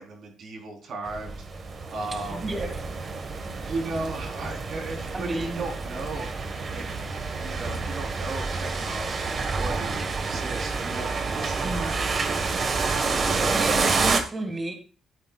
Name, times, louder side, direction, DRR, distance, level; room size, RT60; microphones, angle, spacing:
voice 1, 0.0-2.5 3.6-6.9 7.4-12.6 13.3-13.7, right 3 dB, 65° right, 1 dB, 3.8 m, -36 dB
sound 1, 1.1-14.2, right 4 dB, 45° right, 1.4 m, -28 dB
voice 2, 2.3-2.7 5.1-5.6 11.6-11.9 13.5-14.7, right 2 dB, 30° right, 4 dB, 1.8 m, -31 dB
13.0 x 8.8 x 2.4 m, 0.36 s
cardioid pair, 90°, 0 cm